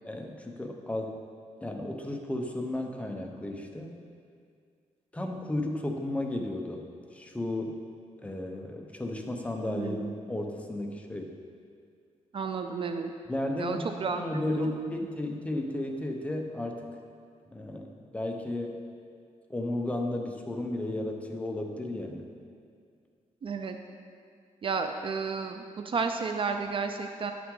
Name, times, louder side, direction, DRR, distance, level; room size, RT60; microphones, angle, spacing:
voice 1, 0.0-1.2 1.6-4.0 5.1-6.8 7.1-7.8 8.2-10.0 10.3-11.3 13.3-16.9 17.5-17.9 18.1-18.8 19.5-22.3, left 1 dB, 10° left, 2 dB, 0.7 m, -33 dB
voice 2, 9.8-10.1 12.3-13.1 13.6-14.2 14.6-14.9 23.4-23.8 24.6-27.3, right 5 dB, 45° right, 6 dB, 0.4 m, -32 dB
10.0 x 5.9 x 3.7 m, 2.2 s
wide cardioid pair, 145°, 13 cm